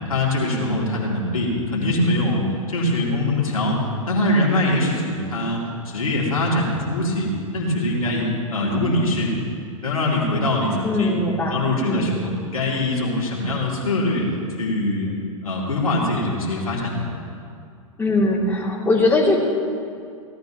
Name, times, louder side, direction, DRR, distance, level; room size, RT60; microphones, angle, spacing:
voice 1, 0.1-5.6 5.8-8.3 8.5-9.3 9.8-11.2 11.5-14.2 14.6-15.1 15.4-17.0, left 1 dB, 85° left, -4 dB, 2.7 m, -23 dB
voice 2, 10.8-11.6 11.9-12.1 18.0-19.4, left 2 dB, 10° left, -4 dB, 2.7 m, -20 dB
17.5 x 13.0 x 3.0 m, 2.4 s
figure-of-eight pair, 100°, 18 cm